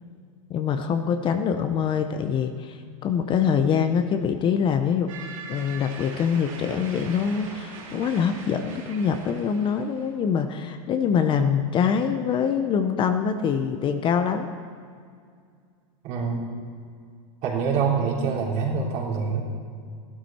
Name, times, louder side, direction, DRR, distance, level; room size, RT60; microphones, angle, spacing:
voice 1, 0.5-5.1 5.5-14.5, left 7 dB, 30° left, 8 dB, 0.7 m, -24 dB
sound 1, 5.1-10.1, right 4 dB, 80° right, 3.9 m, -41 dB
voice 2, 16.0-16.5 17.4-19.4, right 5 dB, 45° right, -2 dB, 3.5 m, -25 dB
15.0 x 12.5 x 4.4 m, 2.1 s
supercardioid pair, 135°, 17 cm